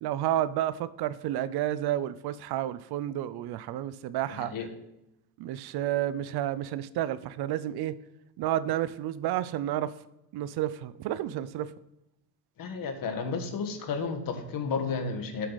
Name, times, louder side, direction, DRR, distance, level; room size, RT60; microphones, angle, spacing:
voice 1, 0.0-4.5 5.4-8.0 8.4-10.0 10.3-11.7, right 12 dB, 70° right, 0.6 m, -31 dB
voice 2, 4.3-4.7 12.6-15.5, left 5 dB, 55° left, 1.6 m, -32 dB
7.9 x 7.8 x 4.0 m
cardioid pair, 115°, 40 cm